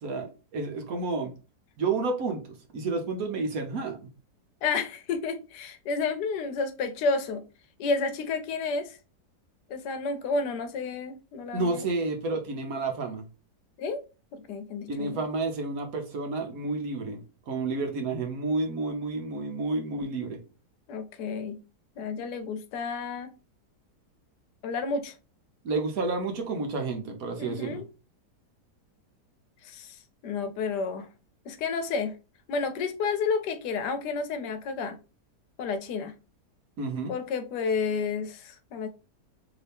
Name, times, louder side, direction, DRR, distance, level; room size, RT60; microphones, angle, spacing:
voice 1, 0.0-1.3 1.8-4.1 11.5-13.3 14.9-17.2 17.5-20.4 25.6-27.8 36.8-37.1, right 3 dB, 65° right, 1.1 m, -30 dB
voice 2, 4.6-7.4 7.8-9.0 9.7-11.9 13.8-14.0 14.3-15.2 20.9-21.6 22.0-23.3 24.6-25.1 27.4-27.8 29.6-31.1 31.5-32.2 32.5-35.0 35.6-36.1 37.1-38.9, left 4 dB, 85° left, 1.2 m, -31 dB
3.1 x 2.8 x 3.4 m
omnidirectional pair, 1.8 m